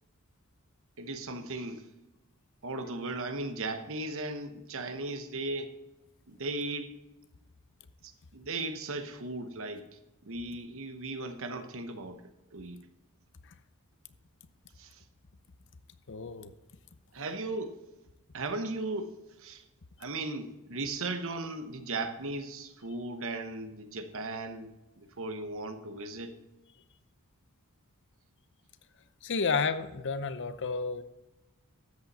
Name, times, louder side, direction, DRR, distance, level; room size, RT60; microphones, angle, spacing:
voice 1, 1.0-1.9 2.6-5.7 6.3-6.9 8.0-12.2 12.5-12.8 14.8-15.0 17.1-17.8 18.3-19.6 20.0-26.4, right 2 dB, 65° right, 8 dB, 1.0 m, -37 dB
voice 2, 16.1-16.5 29.2-31.0, left 4 dB, 55° left, 12 dB, 0.7 m, -31 dB
13.0 x 8.3 x 4.2 m, 1.0 s
head